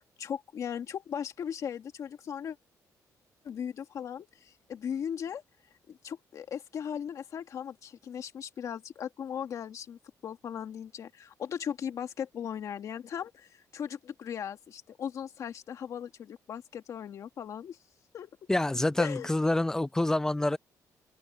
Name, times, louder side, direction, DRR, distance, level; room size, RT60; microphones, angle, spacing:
voice 1, 0.2-2.6 3.4-5.4 5.9-17.8 18.1-18.3 19.0-19.3, left 8 dB, 55° left, 1.8 m, -38 dB
voice 2, 18.5-20.6, left 1 dB, 10° left, 0.6 m, -27 dB
open air
cardioid pair, 150°, 7 cm